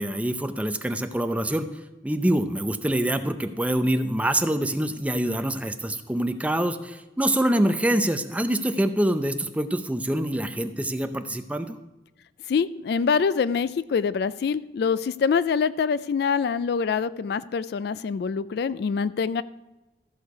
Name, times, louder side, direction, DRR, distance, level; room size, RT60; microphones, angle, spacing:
voice 1, 0.0-1.7 2.0-11.8, right 1 dB, 10° right, 8 dB, 0.5 m, -25 dB
voice 2, 12.5-19.4, left 6 dB, 60° left, 16 dB, 0.3 m, -25 dB
13.5 x 6.6 x 4.7 m, 1.1 s
head